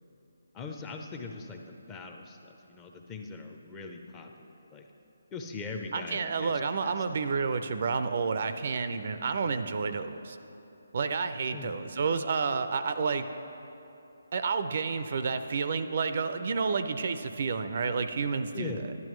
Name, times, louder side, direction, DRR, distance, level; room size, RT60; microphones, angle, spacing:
voice 1, 0.5-4.9 5.3-7.0 11.5-11.7 18.5-19.0, left 4 dB, 15° left, 3 dB, 0.5 m, -41 dB
voice 2, 5.9-10.4 10.9-13.3 14.3-18.7, right 5 dB, 50° right, 10 dB, 0.4 m, -30 dB
10.5 x 10.5 x 3.1 m, 2.9 s
figure-of-eight pair, 155°, 0 cm